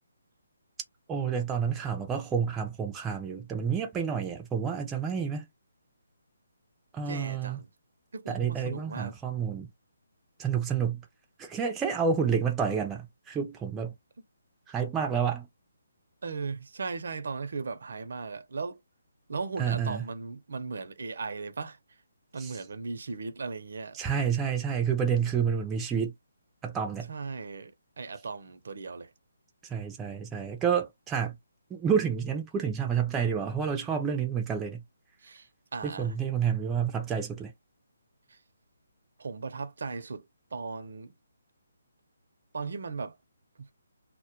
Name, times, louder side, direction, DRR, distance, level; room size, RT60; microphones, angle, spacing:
voice 1, 1.1-5.5 6.9-7.6 8.3-9.7 10.4-11.0 11.4-13.9 14.7-15.5 19.6-20.0 22.4-22.6 23.9-26.1 26.6-27.1 29.6-31.4 31.7-34.8 35.8-37.5, right 7 dB, 10° right, 0.4 m, -29 dB
voice 2, 7.0-7.7 8.1-9.1 16.2-18.8 19.3-21.8 22.3-24.0 27.1-27.7 28.0-29.1 35.2-35.5 35.7-36.1 39.2-40.2 40.5-41.1 42.5-43.1 43.6-43.7, right 4 dB, 65° right, 0.5 m, -37 dB
2.1 x 2.1 x 2.8 m
hypercardioid pair, 160°, 0 cm